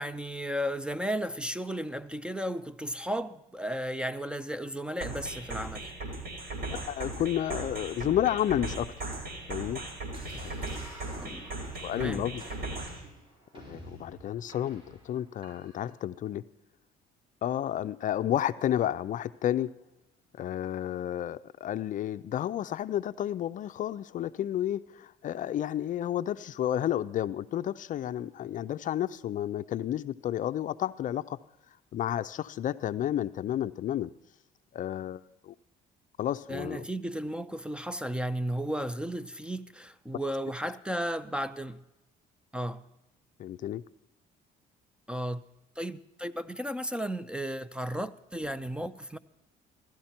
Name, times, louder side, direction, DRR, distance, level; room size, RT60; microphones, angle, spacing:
voice 1, 0.0-5.9 11.2-11.3 11.9-12.3 36.5-41.8 42.5-42.9 45.1-45.4 45.8-49.2, equal, 5° right, 0.5 m, -34 dB
sound 1, 5.0-13.0, right 2 dB, 70° right, 4.6 m, -38 dB
voice 2, 6.7-8.9 9.5-9.8 10.4-10.6 11.8-12.4 13.7-16.4 17.4-19.7 20.3-31.4 31.9-34.1 34.7-35.5 36.2-36.9 43.4-43.8, left 11 dB, 50° left, 0.5 m, -31 dB
sound 2, 10.1-15.9, equal, 30° right, 6.2 m, -48 dB
16.5 x 13.0 x 4.4 m
cardioid pair, 110°, 17 cm